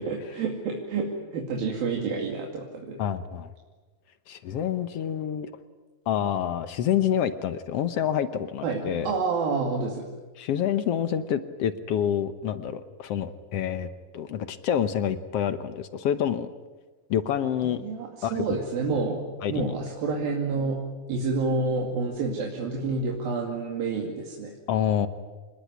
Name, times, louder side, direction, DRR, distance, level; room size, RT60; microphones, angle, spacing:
voice 1, 0.0-3.0 8.6-10.1 17.8-19.2 19.5-20.8 21.1-24.5, right 4 dB, 80° right, 0 dB, 4.2 m, -29 dB
voice 2, 3.0-3.5 4.3-5.5 6.1-9.1 10.4-13.9 14.1-16.5 17.1-17.8 18.2-18.4 19.1-19.8 24.7-25.1, left 9 dB, 75° left, 11 dB, 1.4 m, -27 dB
27.0 x 20.5 x 9.5 m, 1.3 s
omnidirectional pair, 4.1 m